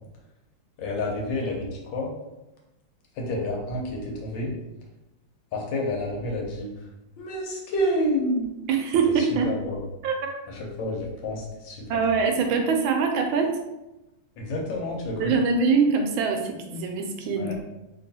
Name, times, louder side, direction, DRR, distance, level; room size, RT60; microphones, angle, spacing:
voice 1, 0.8-2.1 3.2-4.5 5.5-6.7 7.2-8.5 9.0-9.8 10.5-12.1 14.4-15.5 17.4-17.5, left 1 dB, 70° left, -1 dB, 1.4 m, -29 dB
voice 2, 8.7-9.5 10.0-10.4 11.9-13.5 15.2-17.6, right 5 dB, 80° right, 4 dB, 1.3 m, -23 dB
2.9 x 2.9 x 4.0 m, 0.96 s
omnidirectional pair, 2.2 m